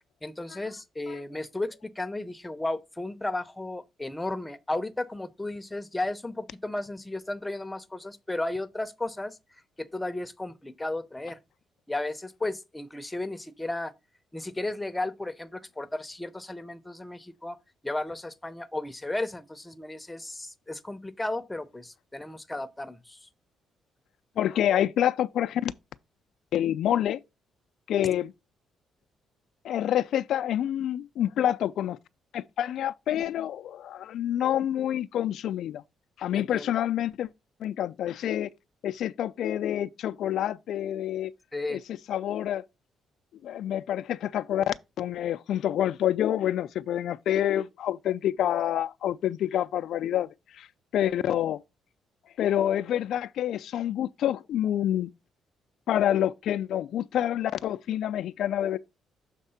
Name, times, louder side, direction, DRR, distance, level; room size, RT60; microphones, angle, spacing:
voice 1, 0.2-9.4 9.8-11.4 11.9-13.9 14.3-17.6 17.8-23.3 36.3-36.7 41.5-41.8, left 2 dB, 10° left, 0.7 m, -34 dB
voice 2, 24.4-25.7 26.5-27.2 27.9-28.3 29.6-32.0 32.3-35.8 36.2-37.3 37.6-38.5 38.8-41.3 41.7-41.8 42.1-42.6 43.4-50.3 50.5-50.7 50.9-51.6 52.4-55.1 55.9-58.8, left 11 dB, 75° left, 0.3 m, -27 dB
6.6 x 3.6 x 5.6 m
cardioid pair, 90°, 0 cm